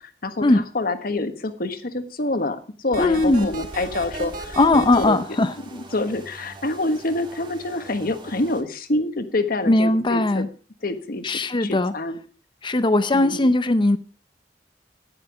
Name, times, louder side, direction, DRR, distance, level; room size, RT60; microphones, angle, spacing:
voice 1, 0.0-10.5 10.8-12.2 13.1-13.5, left 2 dB, 55° left, 9 dB, 1.3 m, -27 dB
sound 1, 2.9-5.1, right 2 dB, 50° right, 4.1 m, -34 dB
voice 2, 3.0-3.5 4.6-5.5 9.7-10.5 11.2-11.9 12.6-14.0, left 2 dB, 25° left, 11 dB, 0.6 m, -19 dB
sound 2, 3.1-8.6, right 2 dB, 25° right, 1.7 m, -44 dB
10.0 x 9.9 x 4.9 m, 0.38 s
head